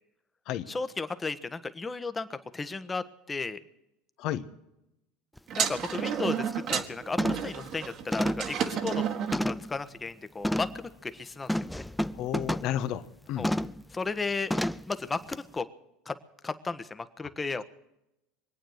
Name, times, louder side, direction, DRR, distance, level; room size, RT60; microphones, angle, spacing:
voice 1, 0.7-3.6 5.5-6.4 6.7-9.0 9.4-11.5 11.8-11.9 13.4-13.5 13.9-14.5 14.9-15.7 16.1-16.2 16.4-17.6, left 4 dB, 20° left, 11 dB, 1.2 m, -34 dB
sound 1, 5.4-5.5 5.9-6.2 6.5-6.8 7.2-7.6 8.1-9.8 10.4-10.8 11.5-12.8 13.4-13.8 14.5-14.9 15.3-15.4, left 1 dB, 5° left, 0.5 m, -31 dB
sound 2, 5.5-9.4, right 8 dB, 50° right, 1.7 m, -31 dB
voice 2, 12.1-13.5, left 11 dB, 60° left, 12 dB, 1.1 m, -32 dB
23.5 x 9.0 x 6.5 m, 0.89 s
hypercardioid pair, 80°, 0 cm